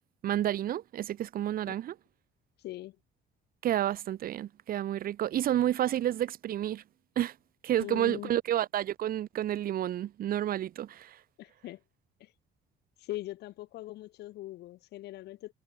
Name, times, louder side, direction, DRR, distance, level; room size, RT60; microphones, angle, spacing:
voice 1, 0.2-1.9 3.6-6.8 7.1-7.3 7.6-11.2, right 12 dB, 60° right, 1.5 m, -30 dB
voice 2, 2.6-3.0 7.8-8.3 11.4-11.8 12.2-12.3 13.0-15.5, left 16 dB, 75° left, 5.1 m, -41 dB
cardioid pair, 110°, 17 cm